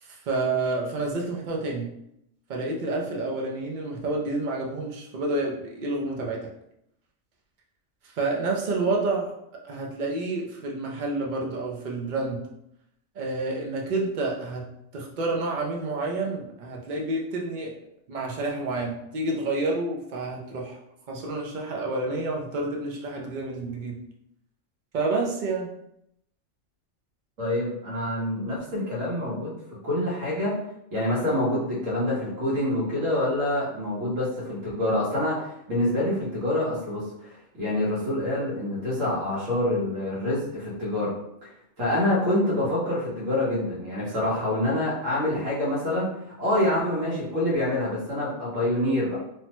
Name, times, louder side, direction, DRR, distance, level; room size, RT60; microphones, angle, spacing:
voice 1, 0.0-1.9 2.5-6.5 8.0-9.3 9.6-12.4 13.2-17.7 18.1-20.8 21.1-24.0 24.9-25.7, right 2 dB, 55° right, -1 dB, 0.5 m, -29 dB
voice 2, 27.4-29.5 29.8-30.5 30.9-41.1 41.8-49.2, left 1 dB, 75° right, -7 dB, 1.5 m, -26 dB
3.1 x 2.1 x 2.9 m, 0.77 s
omnidirectional pair, 1.3 m